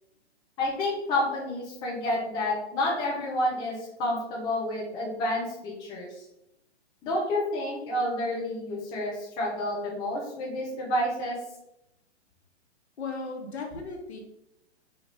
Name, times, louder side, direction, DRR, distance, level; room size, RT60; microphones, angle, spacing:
voice 1, 0.6-6.2 7.0-11.4, left 1 dB, 10° left, -3 dB, 0.5 m, -29 dB
voice 2, 13.0-14.2, left 3 dB, 65° left, 2 dB, 1.0 m, -36 dB
4.1 x 2.3 x 3.5 m, 0.85 s
figure-of-eight pair, 120°, 34 cm